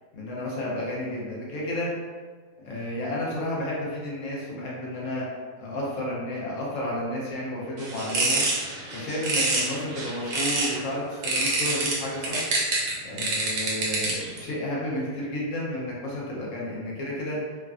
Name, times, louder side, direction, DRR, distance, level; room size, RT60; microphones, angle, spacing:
voice 1, 0.1-1.9 2.6-5.3 5.6-8.4 8.9-12.4 13.0-17.4, left 1 dB, 65° left, -5 dB, 0.9 m, -31 dB
sound 1, 7.8-10.8 11.2-14.4, right 2 dB, 85° right, 1.2 m, -27 dB
3.3 x 2.1 x 2.3 m, 1.5 s
omnidirectional pair, 1.7 m